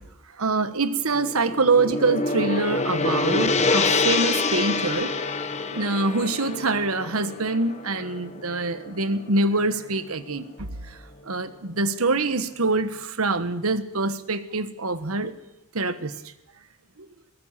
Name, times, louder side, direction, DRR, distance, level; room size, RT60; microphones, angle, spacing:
voice 1, 0.4-5.1 5.7-10.7 11.3-15.3 15.7-16.1, right 3 dB, 75° right, 12 dB, 1.3 m, -25 dB
Gong, 1.1-9.5, left 3 dB, 30° left, 1.3 m, -26 dB
22.5 x 16.5 x 7.4 m, 0.94 s
head